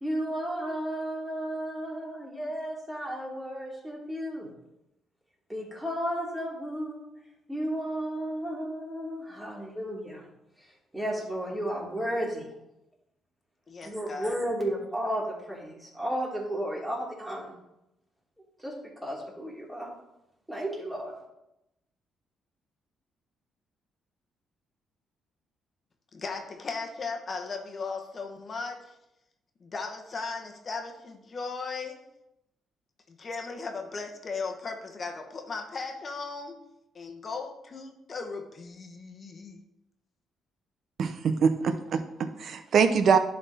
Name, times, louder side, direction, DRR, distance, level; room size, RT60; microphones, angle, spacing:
voice 1, 0.0-4.5 5.5-7.1 7.5-10.2 10.9-12.5 13.8-17.6 18.6-19.9 20.5-21.1, equal, 5° right, -4 dB, 2.7 m, -33 dB
voice 2, 13.7-14.3 26.1-28.8 29.6-32.0 33.1-36.6 36.9-39.6, left 4 dB, 40° left, 3 dB, 1.0 m, -37 dB
voice 3, 41.0-43.2, right 6 dB, 60° right, 10 dB, 0.6 m, -24 dB
11.0 x 4.0 x 3.5 m, 0.89 s
cardioid pair, 90°, 0 cm